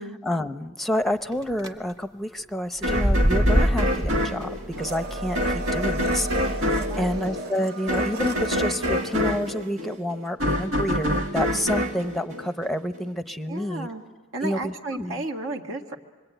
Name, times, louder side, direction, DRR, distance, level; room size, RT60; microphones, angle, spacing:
voice 1, 0.2-13.9 14.4-15.2, equal, ahead, 10 dB, 0.8 m, -29 dB
sound 1, 1.3-1.7 2.8-7.2, equal, 20° right, 1.5 m, -26 dB
sound 2, 2.8-13.0, equal, 80° right, 2.2 m, -27 dB
Domestic sounds home sounds, 4.8-10.0 10.3-10.4, right 2 dB, 50° right, 1.0 m, -36 dB
voice 2, 6.9-7.3 13.5-14.0 14.3-16.0, right 2 dB, 65° right, 3 dB, 2.0 m, -33 dB
26.5 x 23.0 x 9.0 m, 1.3 s
head